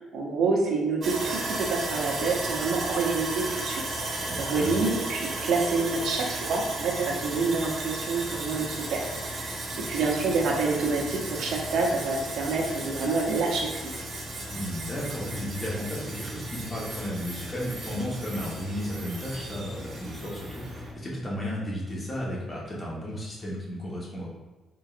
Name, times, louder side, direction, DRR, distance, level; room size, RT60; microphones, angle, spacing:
voice 1, 0.1-3.8 4.1-9.1 9.3-9.5 9.9-13.7, right 3 dB, 75° right, 0 dB, 0.8 m, -27 dB
Sawing, 1.0-20.9, right 2 dB, 45° right, 0.9 m, -35 dB
voice 2, 4.3-4.7 12.6-12.7 14.5-24.3, equal, 30° left, -5 dB, 1.3 m, -34 dB
3.8 x 3.8 x 2.5 m, 1.2 s
cardioid pair, 90°, 0 cm